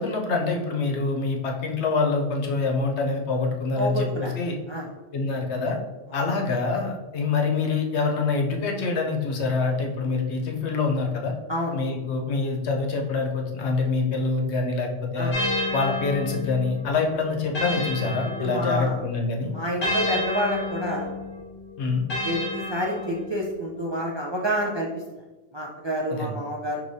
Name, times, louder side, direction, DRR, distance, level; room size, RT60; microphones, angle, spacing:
voice 1, 0.0-4.5 5.1-5.8 6.1-11.3 11.7-15.3 15.7-19.5 21.8-22.0 26.1-26.4, left 4 dB, 85° left, 1 dB, 1.0 m, -25 dB
voice 2, 3.7-4.3 4.7-4.9 6.1-6.2 11.5-11.8 15.2-15.3 18.4-19.0 19.5-21.1 22.2-25.0 25.5-26.8, equal, 40° right, -3 dB, 0.4 m, -28 dB
sound 1, 15.3-19.0 19.8-23.5, left 1 dB, 50° left, 1.4 m, -31 dB
4.8 x 3.0 x 2.7 m, 1.2 s
omnidirectional pair, 1.1 m